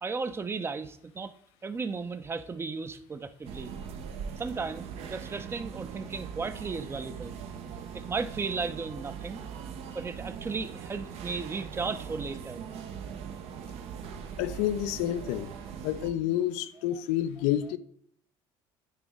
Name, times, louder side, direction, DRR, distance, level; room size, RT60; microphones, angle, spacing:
voice 1, 0.0-1.3 1.6-3.7 4.4-7.4 7.9-9.4 9.9-12.6 16.8-17.0, right 4 dB, 20° right, 0.5 m, -35 dB
sound 1, 3.4-16.1, right 7 dB, 70° right, 0.6 m, -41 dB
voice 2, 14.4-15.5 15.8-17.8, left 12 dB, 85° left, 0.4 m, -29 dB
8.8 x 3.1 x 3.5 m
supercardioid pair, 95°, 11 cm